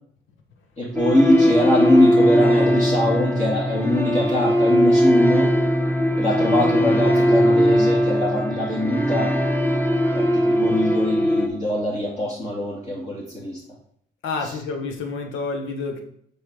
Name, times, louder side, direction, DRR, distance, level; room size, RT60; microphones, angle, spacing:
voice 1, 0.8-5.5 6.2-9.3 10.1-13.6 14.4-14.5, left 1 dB, 35° left, -6 dB, 2.7 m, -22 dB
sound 1, 0.9-11.5, equal, 10° left, 1.3 m, -19 dB
voice 2, 14.2-16.0, left 4 dB, 85° left, 5 dB, 1.4 m, -29 dB
6.3 x 5.5 x 4.9 m, 0.66 s
cardioid pair, 90°, 20 cm